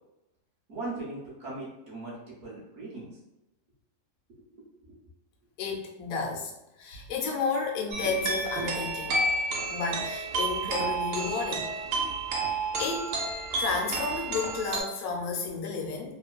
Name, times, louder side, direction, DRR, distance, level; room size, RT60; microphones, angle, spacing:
voice 1, 0.7-3.1 4.3-5.0, right 2 dB, 60° right, -5 dB, 0.9 m, -40 dB
voice 2, 5.6-6.5 6.8-9.2 9.7-11.7 12.8-13.2 13.6-16.2, left 4 dB, 70° left, 0 dB, 1.0 m, -32 dB
sound 1, 7.9-14.8, right 2 dB, 85° right, 1.2 m, -30 dB
2.9 x 2.2 x 2.3 m, 0.92 s
omnidirectional pair, 1.7 m